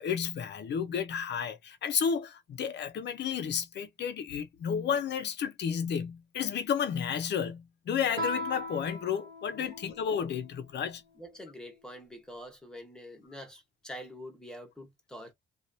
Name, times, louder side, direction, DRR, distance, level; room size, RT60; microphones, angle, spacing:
voice 1, 0.0-11.0, left 7 dB, 60° left, 0.8 m, -32 dB
Guitar, 8.1-10.6, left 1 dB, 75° right, 1.1 m, -38 dB
voice 2, 9.6-9.9 11.1-15.3, equal, 5° left, 1.2 m, -46 dB
2.8 x 2.5 x 2.7 m
cardioid pair, 90°, 20 cm